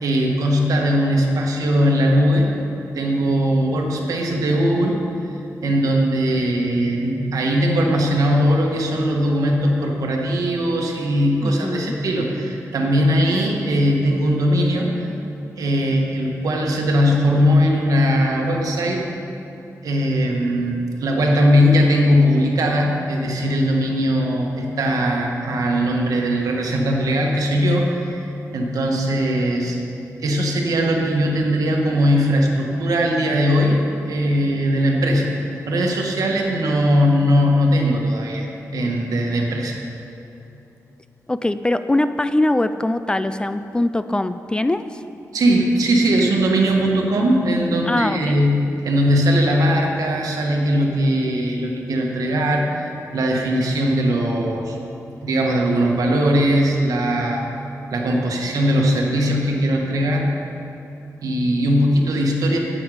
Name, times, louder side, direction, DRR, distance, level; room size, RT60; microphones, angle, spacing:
voice 1, 0.0-2.5 2.9-5.0 5.2-5.3 5.6-15.1 15.6-19.0 19.8-28.2 28.5-29.8 30.2-33.8 34.1-38.5 38.7-39.8 45.3-54.8 55.2-57.4 57.9-60.3 61.2-62.6, equal, 80° right, 0 dB, 1.5 m, -19 dB
voice 2, 11.4-12.0 41.3-45.0 47.9-48.4, left 1 dB, 15° left, 11 dB, 0.3 m, -22 dB
11.5 x 9.0 x 5.0 m, 2.9 s
wide cardioid pair, 125°, 6 cm